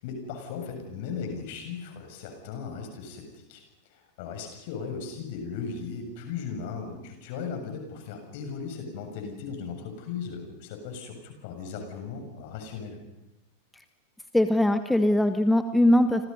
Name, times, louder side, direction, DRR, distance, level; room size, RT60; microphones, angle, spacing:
voice 1, 0.0-3.6 3.9-13.0, left 5 dB, 50° left, 4 dB, 7.2 m, -37 dB
voice 2, 14.3-16.3, left 1 dB, 5° left, 9 dB, 1.3 m, -21 dB
29.5 x 26.5 x 5.6 m, 0.94 s
figure-of-eight pair, 90°, 0 cm